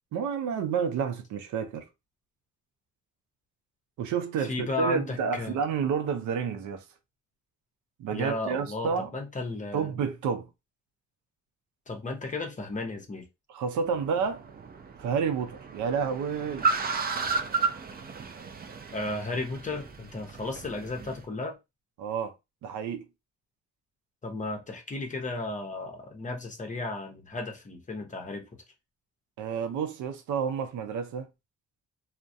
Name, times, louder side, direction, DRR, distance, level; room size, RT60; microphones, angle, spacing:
voice 1, 0.1-1.9 4.0-6.8 8.0-9.1 9.7-10.5 13.5-14.4 15.0-16.7 22.0-22.3 22.6-23.1 29.4-31.3, right 6 dB, 75° right, 0.6 m, -30 dB
voice 2, 4.4-5.6 8.1-9.9 11.9-13.3 18.9-21.6 24.2-28.6, left 2 dB, 25° left, 0.7 m, -34 dB
Car, 13.8-21.2, right 4 dB, 30° right, 0.4 m, -33 dB
2.3 x 2.1 x 2.6 m
cardioid pair, 90°, 30 cm